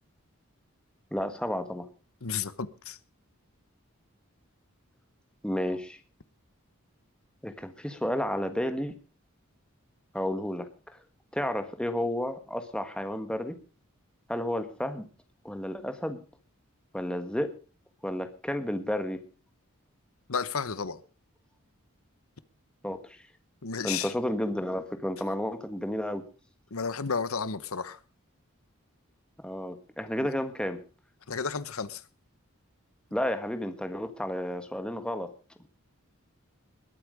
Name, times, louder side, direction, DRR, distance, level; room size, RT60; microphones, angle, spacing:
voice 1, 1.1-1.9 5.4-6.0 7.4-9.0 10.1-10.7 11.3-13.6 14.3-15.0 15.4-16.2 16.9-17.5 18.0-19.2 22.8-23.2 23.8-26.2 29.4-30.8 33.1-35.3, left 1 dB, 5° left, 1.5 m, -31 dB
voice 2, 2.2-3.0 20.3-21.0 23.6-24.1 26.7-28.0 31.3-32.0, left 5 dB, 85° left, 1.0 m, -32 dB
21.0 x 8.4 x 5.1 m
head